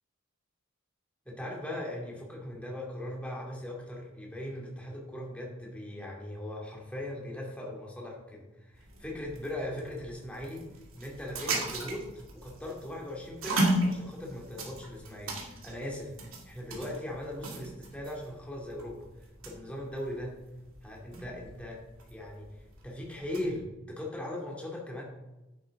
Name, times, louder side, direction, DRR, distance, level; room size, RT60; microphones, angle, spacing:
voice 1, 1.3-10.7 11.0-12.0 12.4-19.0 19.4-20.3 20.8-21.8 22.1-22.5 22.8-25.0, left 1 dB, 5° left, -2 dB, 2.4 m, -39 dB
sound 1, 8.7-23.6, right 1 dB, 85° right, 2.5 m, -37 dB
10.5 x 8.7 x 3.8 m, 1.0 s
head